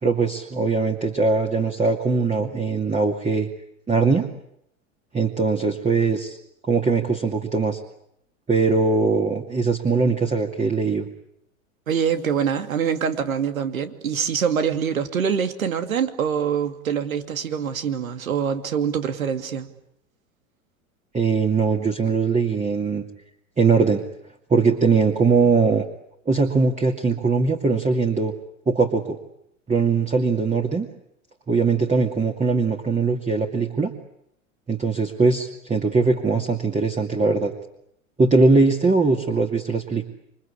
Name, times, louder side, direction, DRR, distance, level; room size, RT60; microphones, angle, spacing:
voice 1, 0.0-3.5 3.9-4.3 5.1-6.4 6.6-7.8 8.5-11.1 21.1-23.0 23.6-24.0 24.5-25.8 26.3-28.3 28.7-29.2 29.7-30.9 31.5-33.9 34.7-37.5 38.2-40.0, right 4 dB, 15° right, 2.5 m, -21 dB
voice 2, 11.9-19.7, right 7 dB, 85° right, 2.6 m, -24 dB
28.0 x 24.5 x 8.6 m
hypercardioid pair, 90°, 40 cm